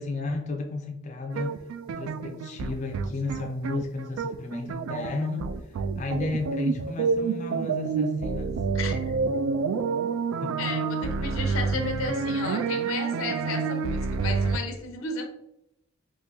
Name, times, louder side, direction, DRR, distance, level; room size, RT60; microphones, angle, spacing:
voice 1, 0.0-1.6 1.9-8.6 10.4-10.6 11.2-11.4, left 2 dB, 35° left, 0.3 m, -33 dB
sound 1, 1.3-14.6, right 4 dB, 85° right, 0.3 m, -28 dB
voice 2, 8.7-9.2 10.6-15.3, left 3 dB, 90° left, 0.6 m, -33 dB
3.6 x 2.6 x 2.7 m
head